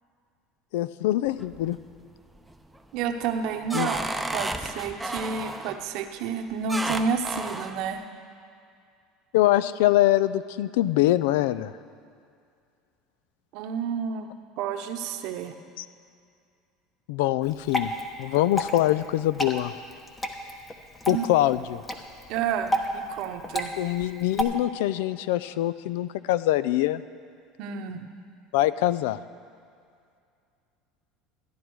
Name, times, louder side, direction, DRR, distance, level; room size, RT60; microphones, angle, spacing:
voice 1, 0.7-1.8 3.7-3.9 9.3-11.7 15.8-15.9 17.1-17.9 18.2-19.7 21.1-21.8 23.8-27.0 28.5-29.2, left 14 dB, 80° left, 16 dB, 0.4 m, -24 dB
sound 1, 1.3-1.9 2.3-2.8 3.2-5.8 6.7-7.8, right 2 dB, 5° right, 0.7 m, -32 dB
voice 2, 2.9-8.0 13.5-14.3 14.6-15.5 21.1-21.3 22.3-23.7 27.6-28.0, right 6 dB, 65° right, 6 dB, 0.9 m, -30 dB
Water / Drip, 17.4-24.4, equal, 20° left, 1.1 m, -32 dB
14.0 x 10.0 x 4.7 m, 2.3 s
supercardioid pair, 100°, 0 cm